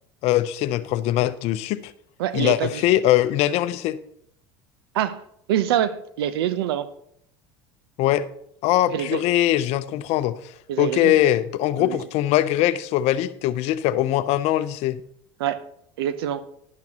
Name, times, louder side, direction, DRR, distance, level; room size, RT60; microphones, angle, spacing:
voice 1, 0.2-1.9 2.3-4.0 8.0-8.3 8.6-10.3 10.8-15.0, left 13 dB, 60° left, 0.7 m, -21 dB
voice 2, 2.2-2.8 4.9-5.2 5.5-6.9 8.9-9.2 10.7-11.1 11.8-12.0 15.4-15.6 16.0-16.4, right 10 dB, 80° right, 0.7 m, -25 dB
11.5 x 10.5 x 2.9 m
hypercardioid pair, 90°, 13 cm